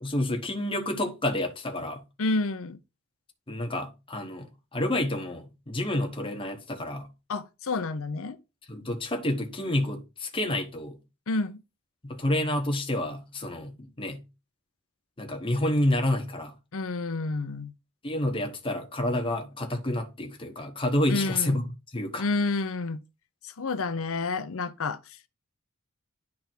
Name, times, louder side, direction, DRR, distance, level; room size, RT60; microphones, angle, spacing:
voice 1, 0.0-2.0 3.5-7.1 8.7-11.0 12.0-14.2 15.2-16.5 18.0-21.6 21.9-22.3, left 1 dB, 25° left, 1.1 m, -29 dB
voice 2, 2.2-2.8 7.3-8.4 11.3-11.6 16.7-17.7 21.1-21.6 22.2-23.0 23.4-25.0, left 3 dB, 65° left, 0.7 m, -29 dB
10.5 x 3.6 x 4.4 m
head